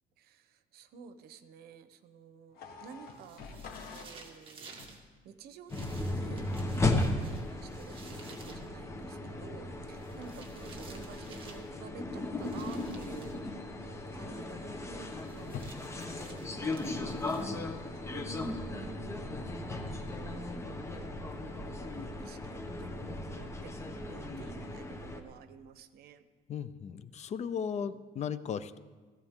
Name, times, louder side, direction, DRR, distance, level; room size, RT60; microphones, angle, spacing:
voice 1, 0.2-3.5 3.9-4.7 5.0-13.5 13.9-15.7 16.1-16.9 17.9-20.5 21.5-26.2 27.8-28.0, right 6 dB, 80° right, 11 dB, 1.0 m, -51 dB
sound 1, 2.5-4.1 4.7-5.1 8.5-8.9 9.3-9.7 11.8-12.1 12.6-13.0 13.4-13.9 14.6-15.0 15.4-17.5, left 5 dB, 75° left, 1.7 m, -49 dB
sound 2, 3.1-5.0 5.7-8.7 9.9-11.7 12.4-13.4 15.0-17.8, right 4 dB, 35° right, 2.0 m, -54 dB
sound 3, 5.7-25.2, left 2 dB, 15° left, 1.1 m, -36 dB
voice 2, 26.5-28.8, left 7 dB, 45° left, 14 dB, 0.6 m, -36 dB
16.5 x 16.0 x 3.7 m, 1.4 s
cardioid pair, 140°, 16 cm